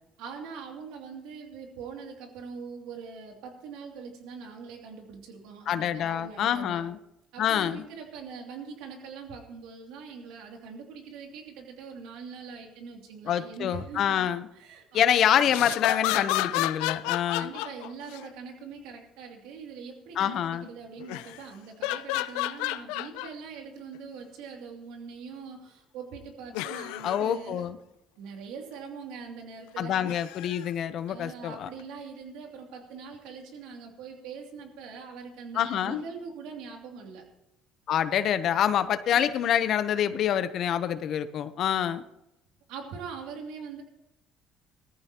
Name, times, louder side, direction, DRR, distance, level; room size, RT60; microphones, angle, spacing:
voice 1, 0.2-6.8 7.3-14.3 14.5-15.2 17.4-27.6 28.2-30.0 31.1-37.4 39.1-39.4 42.7-43.8, right 5 dB, 85° right, 2 dB, 2.6 m, -42 dB
voice 2, 5.7-7.0 7.4-7.8 13.3-14.5 14.9-17.5 20.2-20.7 27.0-27.8 29.8-31.7 35.5-36.0 37.9-42.0, left 9 dB, 60° left, 12 dB, 0.8 m, -26 dB
sound 1, 15.5-18.3 21.0-21.4 21.8-23.3 23.9-24.0 26.5-27.2 30.0-30.7 31.8-31.9, left 17 dB, 90° left, 0.5 m, -31 dB
19.5 x 14.5 x 3.0 m, 0.88 s
supercardioid pair, 90°, 0 cm